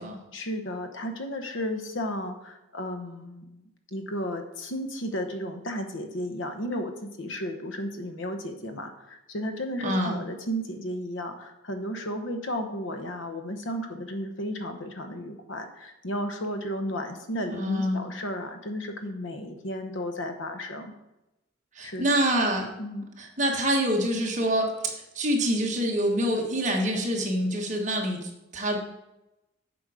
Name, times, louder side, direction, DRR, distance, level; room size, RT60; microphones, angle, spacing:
voice 1, 0.3-20.9 21.8-22.3 22.8-23.1, equal, 85° left, 6 dB, 1.0 m, -34 dB
voice 2, 9.8-10.2 17.4-18.0 21.8-22.7 23.2-24.7 25.1-28.8, equal, 40° right, 0 dB, 1.3 m, -26 dB
7.7 x 5.2 x 4.8 m, 0.95 s
head